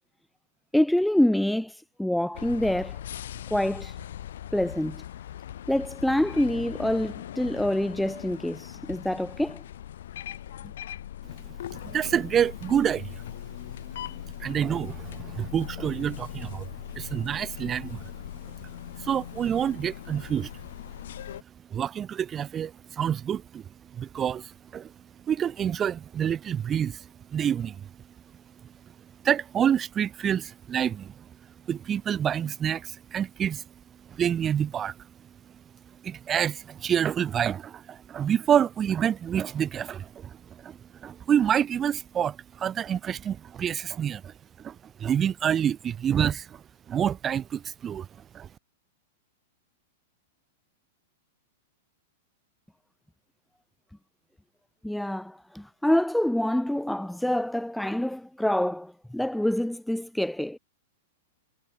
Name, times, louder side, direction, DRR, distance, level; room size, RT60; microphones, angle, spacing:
voice 1, 0.7-3.0 3.5-4.0 4.5-5.0 5.7-9.6 54.8-60.6, left 1 dB, ahead, 1.3 m, -26 dB
sound 1, 2.3-21.4, left 11 dB, 70° left, 3.7 m, -40 dB
voice 2, 11.7-13.2 14.4-16.7 17.0-18.1 18.4-18.5 19.0-20.5 21.7-23.6 23.9-24.9 25.3-27.9 29.2-31.1 31.7-33.6 34.1-34.9 36.0-40.4 40.6-46.6 46.9-48.1 48.3-48.5, right 9 dB, 25° right, 4.0 m, -27 dB
hypercardioid pair, 110°, 0 cm